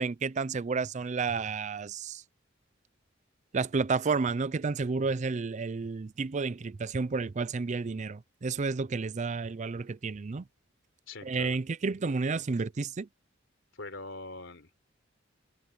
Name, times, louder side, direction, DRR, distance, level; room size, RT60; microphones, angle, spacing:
voice 1, 0.0-2.2 3.5-10.4 11.2-13.1, right 4 dB, 35° right, 0.4 m, -31 dB
voice 2, 11.1-11.6 13.7-14.9, left 2 dB, 70° left, 3.9 m, -43 dB
head